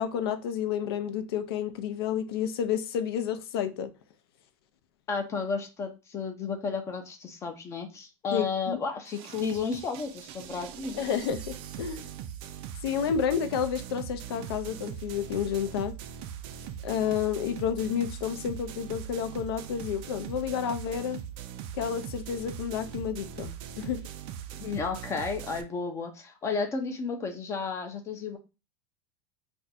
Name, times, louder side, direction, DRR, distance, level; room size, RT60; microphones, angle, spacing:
voice 1, 0.0-3.9 8.3-8.8 11.0-12.1 12.8-16.0 16.8-21.2 21.7-24.0, left 8 dB, 85° left, 0.5 m, -30 dB
voice 2, 5.1-11.0 24.6-28.4, left 5 dB, 20° left, 0.5 m, -32 dB
sound 1, 9.0-25.6, right 9 dB, 45° right, 0.4 m, -41 dB
2.5 x 2.2 x 4.0 m
supercardioid pair, 145°, 13 cm